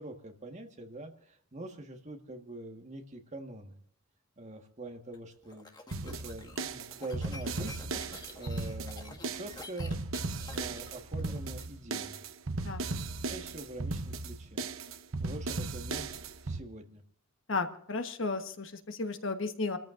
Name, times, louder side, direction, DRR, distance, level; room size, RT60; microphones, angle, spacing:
voice 1, 0.0-3.8 4.4-5.7 6.0-10.0 10.5-12.2 13.3-14.7 15.2-17.0, right 1 dB, 35° right, 4 dB, 1.5 m, -45 dB
sound 1, 5.1-11.7, left 2 dB, 20° left, 1.6 m, -49 dB
sound 2, 5.9-16.6, right 3 dB, 65° right, 0.8 m, -36 dB
voice 2, 17.5-19.8, left 3 dB, 60° left, 7 dB, 1.3 m, -34 dB
29.5 x 13.5 x 2.6 m, 0.64 s
head